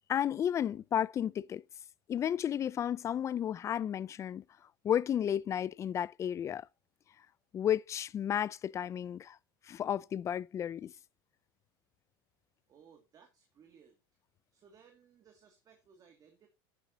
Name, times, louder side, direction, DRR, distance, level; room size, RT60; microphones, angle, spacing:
voice 1, 0.1-1.6 2.1-4.4 4.8-6.7 7.5-9.4 9.7-10.9, left 9 dB, 25° left, 0.4 m, -32 dB
voice 2, 12.7-14.0 14.5-16.5, right 7 dB, 30° right, 2.3 m, -61 dB
11.5 x 9.8 x 2.8 m
supercardioid pair, 130°, 13 cm